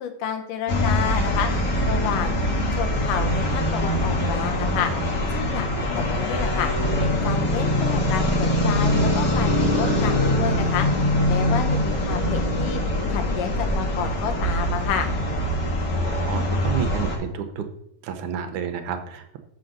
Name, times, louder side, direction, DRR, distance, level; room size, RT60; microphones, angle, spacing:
voice 1, 0.0-1.5 1.9-2.4 2.7-4.9 5.3-5.7 5.9-6.7 7.0-10.9 11.3-12.8 13.1-15.1, left 8 dB, 85° left, 5 dB, 2.5 m, -29 dB
sound 1, 0.7-17.2, left 1 dB, 50° left, 1.3 m, -23 dB
voice 2, 15.9-17.7 18.0-19.4, right 7 dB, 75° right, 6 dB, 2.1 m, -30 dB
6.0 x 5.7 x 6.6 m, 0.79 s
omnidirectional pair, 3.7 m